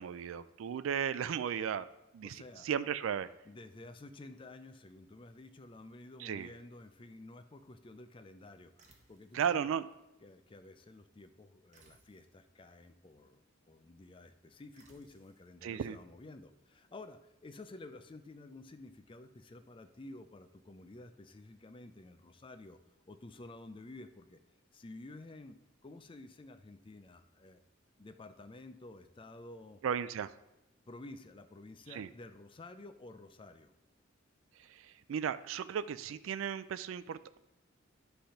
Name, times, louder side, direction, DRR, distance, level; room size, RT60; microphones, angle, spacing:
voice 1, 0.0-1.9 2.1-3.3 6.2-6.5 9.3-9.9 15.6-16.0 29.8-30.3 31.9-32.1 34.7-37.4, right 8 dB, 85° right, 14 dB, 0.3 m, -35 dB
voice 2, 2.2-2.7 3.4-8.7 9.1-9.7 10.2-22.8 23.1-24.4 24.7-25.6 25.8-27.6 28.0-29.8 30.9-33.7, left 2 dB, 25° left, 9 dB, 0.5 m, -52 dB
sound 1, 8.8-9.4 11.7-12.4 14.8-15.5, right 3 dB, 40° right, 1.2 m, -64 dB
10.0 x 3.4 x 5.7 m, 0.93 s
head